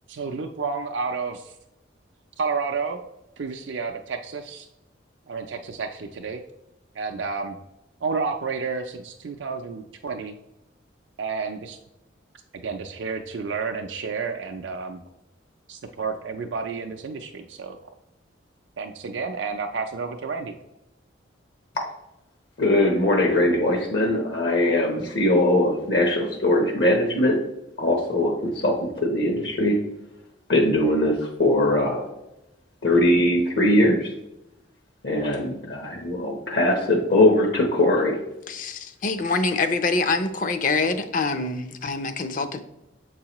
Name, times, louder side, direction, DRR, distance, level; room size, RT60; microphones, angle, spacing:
voice 1, 0.1-1.5 2.4-3.0 3.4-4.7 5.3-6.4 6.9-7.6 8.0-10.3 11.2-11.8 12.6-15.0 15.7-17.8 18.8-20.5, right 4 dB, 70° right, 3 dB, 0.4 m, -30 dB
voice 2, 22.6-27.4 27.8-29.8 30.5-32.0 32.8-34.1 35.0-38.2, left 1 dB, 65° left, 2 dB, 0.8 m, -21 dB
voice 3, 38.5-42.6, left 3 dB, 45° left, 9 dB, 0.5 m, -25 dB
7.0 x 4.7 x 2.9 m, 0.90 s
head